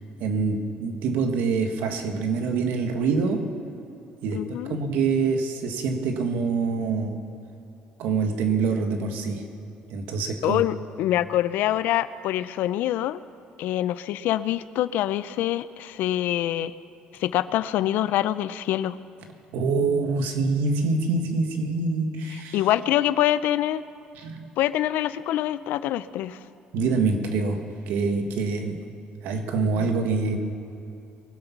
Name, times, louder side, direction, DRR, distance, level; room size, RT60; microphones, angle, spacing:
voice 1, 0.2-3.4 4.2-7.2 8.0-9.4 9.9-10.6 19.5-22.6 24.2-24.5 26.7-28.8 29.2-30.4, right 4 dB, 80° right, 5 dB, 1.7 m, -25 dB
voice 2, 4.3-4.8 10.4-13.2 13.6-16.7 17.2-19.0 22.5-23.8 24.6-26.4 29.8-29.9, left 13 dB, 75° left, 15 dB, 0.5 m, -25 dB
22.5 x 8.2 x 6.0 m, 2.9 s
cardioid pair, 120°, 3 cm